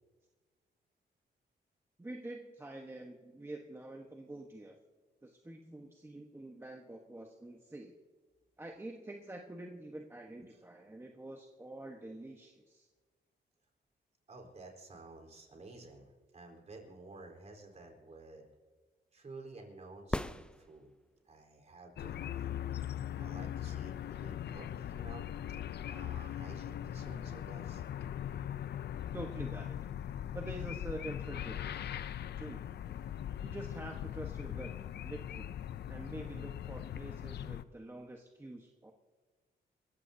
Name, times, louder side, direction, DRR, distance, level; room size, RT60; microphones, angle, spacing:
voice 1, 2.0-4.8 5.2-8.0 8.6-12.9 29.1-29.8 30.3-31.8 32.4-32.6 33.4-34.7 35.0-35.6 35.9-38.9, right 1 dB, 15° right, 1 dB, 1.2 m, -46 dB
voice 2, 14.3-18.5 19.1-20.9 21.3-22.5 23.2-27.8, right 2 dB, 40° right, 1 dB, 4.1 m, -52 dB
sound 1, 20.1-21.2 25.1-25.2, left 1 dB, 5° left, 0.5 m, -38 dB
sound 2, 22.0-37.6, left 10 dB, 65° left, 0.6 m, -40 dB
28.0 x 15.0 x 2.8 m, 1.4 s
cardioid pair, 110°, 18 cm